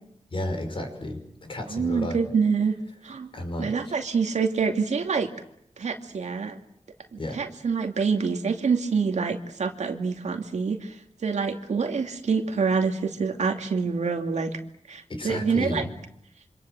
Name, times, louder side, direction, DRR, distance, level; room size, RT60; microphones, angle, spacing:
voice 1, 0.3-2.2 3.3-3.7 7.2-7.4 15.1-15.9, left 1 dB, 45° left, 5 dB, 5.6 m, -32 dB
voice 2, 1.7-2.7 3.0-3.3 3.6-5.3 5.8-6.6 7.1-11.0 11.2-14.6 14.9-15.8, right 5 dB, 80° right, 5 dB, 2.5 m, -26 dB
26.5 x 26.0 x 7.7 m, 0.74 s
wide cardioid pair, 130°, 12 cm